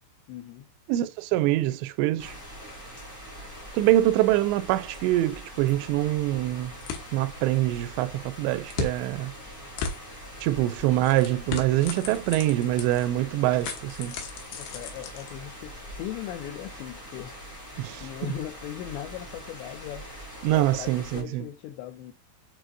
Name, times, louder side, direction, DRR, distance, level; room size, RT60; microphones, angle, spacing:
voice 1, 0.3-0.7 14.5-17.3 18.0-20.2 20.5-22.1, left 12 dB, 90° left, 2.5 m, -38 dB
voice 2, 0.9-2.3 3.7-6.8 7.1-9.3 10.4-14.2 17.8-18.3 20.4-21.4, right 15 dB, 85° right, 2.5 m, -25 dB
sound 1, 2.2-21.2, equal, 10° left, 0.7 m, -43 dB
sound 2, 5.5-15.8, left 6 dB, 70° left, 2.9 m, -39 dB
7.6 x 4.7 x 2.6 m
omnidirectional pair, 5.8 m